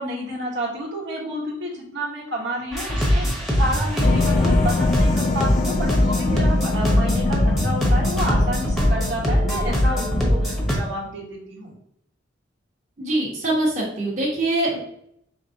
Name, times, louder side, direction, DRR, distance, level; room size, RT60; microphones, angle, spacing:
voice 1, 0.0-11.7, equal, 75° right, -4 dB, 1.4 m, -30 dB
sound 1, 2.7-10.8, equal, ahead, 0.9 m, -21 dB
sound 2, 4.0-10.8, left 4 dB, 40° left, 0.3 m, -25 dB
voice 2, 13.0-14.8, right 2 dB, 40° right, -5 dB, 1.3 m, -23 dB
5.0 x 3.3 x 2.8 m, 0.72 s
head